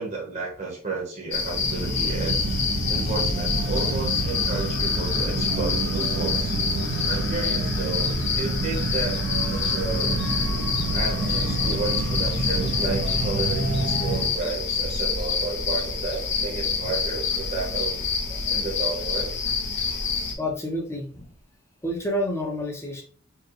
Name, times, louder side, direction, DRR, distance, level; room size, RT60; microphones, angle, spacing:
voice 1, 0.0-2.4 2.9-6.6 7.1-9.2 9.5-10.2 10.9-18.0 18.5-19.3, right 3 dB, 40° right, -2 dB, 1.0 m, -32 dB
sound 1, 1.3-20.3, left 5 dB, 60° left, 0.8 m, -27 dB
sound 2, 1.5-14.3, right 2 dB, 65° right, 0.7 m, -28 dB
voice 2, 20.4-21.3 21.8-23.0, left 1 dB, 15° left, 1 dB, 0.8 m, -29 dB
4.6 x 2.2 x 3.1 m, 0.43 s
head